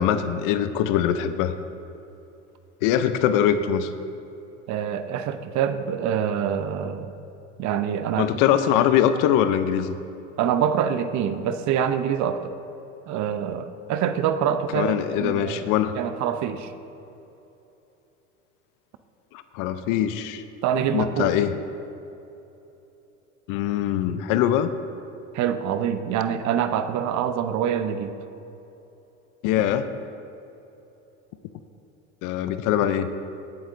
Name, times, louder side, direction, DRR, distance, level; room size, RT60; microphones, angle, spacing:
voice 1, 0.0-1.5 2.8-3.9 8.2-10.0 14.7-15.9 19.3-20.4 20.9-21.6 23.5-24.7 29.4-29.9 32.2-33.1, left 10 dB, 55° left, 11 dB, 0.7 m, -22 dB
voice 2, 4.7-7.1 7.6-8.3 10.4-12.5 13.1-16.7 20.6-21.3 25.3-28.1, right 8 dB, 50° right, 10 dB, 0.8 m, -25 dB
17.5 x 7.8 x 2.6 m, 2.9 s
hypercardioid pair, 80°, 38 cm